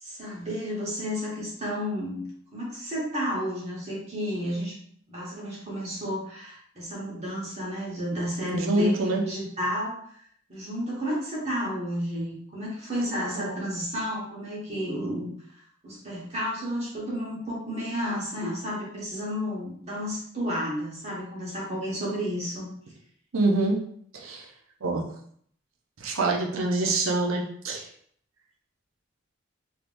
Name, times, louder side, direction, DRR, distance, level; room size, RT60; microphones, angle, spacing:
voice 1, 0.0-2.2 2.5-4.7 5.1-10.0 10.5-15.3 15.8-22.7, equal, 35° right, -5 dB, 1.2 m, -32 dB
voice 2, 8.5-9.2 13.3-13.5 23.3-23.8 24.1-24.5 24.8-25.1 26.0-27.9, right 2 dB, 80° right, 1 dB, 0.7 m, -25 dB
3.4 x 2.9 x 2.5 m, 0.63 s
head